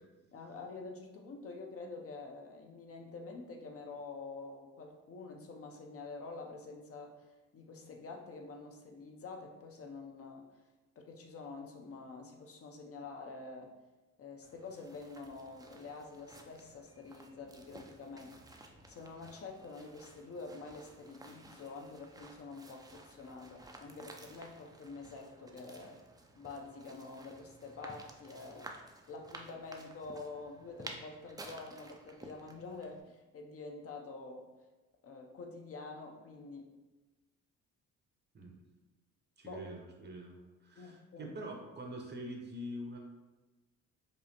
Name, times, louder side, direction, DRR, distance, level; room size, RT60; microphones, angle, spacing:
voice 1, 0.3-7.3 7.5-10.4 11.0-13.7 14.2-18.3 18.9-26.0 26.4-28.7 29.1-34.5 35.0-36.7 39.4-39.7 40.8-41.3, left 3 dB, 50° left, 2 dB, 0.6 m, -47 dB
sound 1, 14.4-33.0, right 2 dB, 15° right, 0.4 m, -54 dB
voice 2, 39.4-43.0, equal, 35° right, 1 dB, 0.8 m, -45 dB
5.3 x 2.0 x 2.8 m, 1.1 s
cardioid pair, 90°, 30 cm